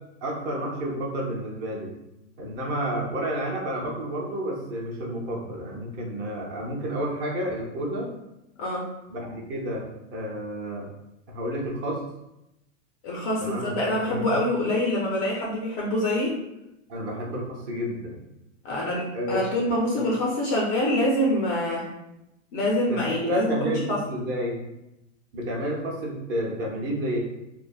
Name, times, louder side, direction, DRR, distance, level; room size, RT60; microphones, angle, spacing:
voice 1, 0.2-1.9 2.4-8.1 9.1-10.9 11.3-12.0 13.4-14.3 16.9-18.2 19.1-19.4 19.9-20.1 22.9-24.6 25.3-27.2, equal, 30° right, -1 dB, 0.5 m, -30 dB
voice 2, 13.0-16.4 18.6-21.9 22.5-24.0, left 1 dB, 30° left, -3 dB, 0.4 m, -25 dB
3.2 x 2.0 x 2.2 m, 0.88 s
supercardioid pair, 135°, 39 cm